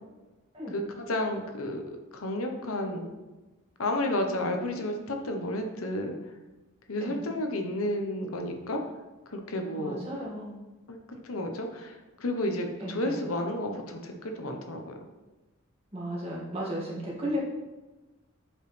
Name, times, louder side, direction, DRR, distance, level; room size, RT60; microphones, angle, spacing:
voice 1, 0.7-1.8 2.1-3.1 3.8-6.1 6.9-8.8 9.3-10.0 10.9-14.9, left 1 dB, 85° left, 4 dB, 0.9 m, -31 dB
voice 2, 9.8-10.6 12.8-13.2 15.9-17.4, equal, 30° right, -5 dB, 1.9 m, -34 dB
7.4 x 5.1 x 3.3 m, 1.1 s
head